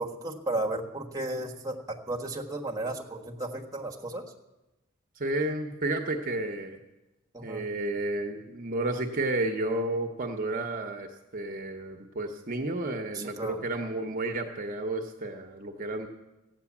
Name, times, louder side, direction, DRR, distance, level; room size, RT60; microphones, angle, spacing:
voice 1, 0.0-4.2 7.3-7.6 13.4-13.6, right 2 dB, 15° right, 0 dB, 1.4 m, -34 dB
voice 2, 5.2-6.8 7.4-16.1, right 2 dB, 45° right, 4 dB, 0.9 m, -31 dB
15.0 x 9.2 x 7.2 m, 1.0 s
head